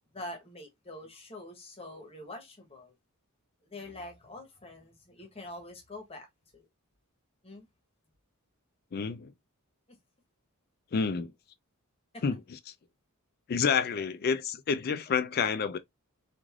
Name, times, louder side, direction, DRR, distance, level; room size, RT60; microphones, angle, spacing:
voice 1, 0.1-2.9 3.7-6.3 6.5-6.6 7.4-7.7 9.9-10.0 12.1-12.2, left 1 dB, 25° left, 0.9 m, -45 dB
voice 2, 8.9-9.3 10.9-11.3 12.2-12.4 13.5-15.8, left 6 dB, 45° left, 0.4 m, -28 dB
3.2 x 2.5 x 2.3 m
head